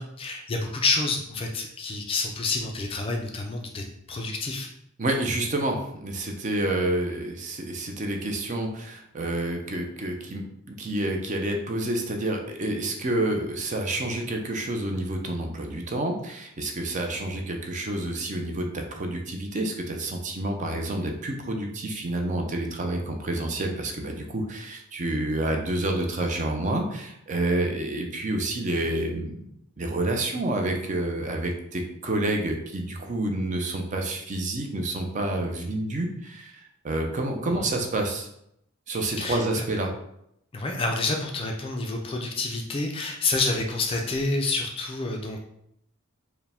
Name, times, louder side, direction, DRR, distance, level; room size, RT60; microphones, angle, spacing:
voice 1, 0.0-4.7 37.6-37.7 39.2-39.6 40.5-45.4, left 3 dB, 25° left, 2 dB, 0.3 m, -28 dB
voice 2, 5.0-10.4 10.7-29.4 29.8-38.3 38.9-39.9, right 1 dB, 35° right, 3 dB, 0.5 m, -28 dB
4.7 x 2.1 x 3.4 m, 0.76 s
head